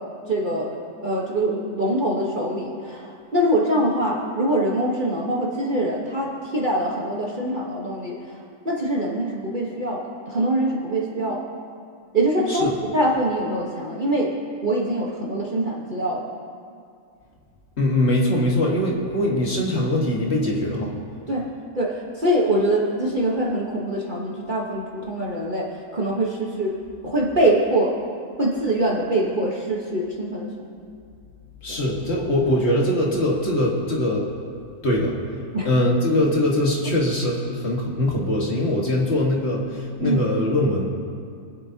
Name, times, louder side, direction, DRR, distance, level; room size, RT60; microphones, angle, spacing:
voice 1, 0.3-0.7 1.0-8.1 8.6-11.4 12.1-14.3 14.6-16.2 21.3-21.5 21.7-25.7 25.9-26.7 27.0-27.9 28.4-30.7 31.7-31.8 35.5-35.7 40.0-40.2, right 1 dB, 35° right, -4 dB, 1.3 m, -23 dB
voice 2, 17.8-20.9 31.6-34.3 34.8-35.2 35.6-40.8, left 1 dB, 45° left, -2 dB, 1.8 m, -22 dB
24.0 x 8.1 x 2.8 m, 2.4 s
omnidirectional pair, 1.6 m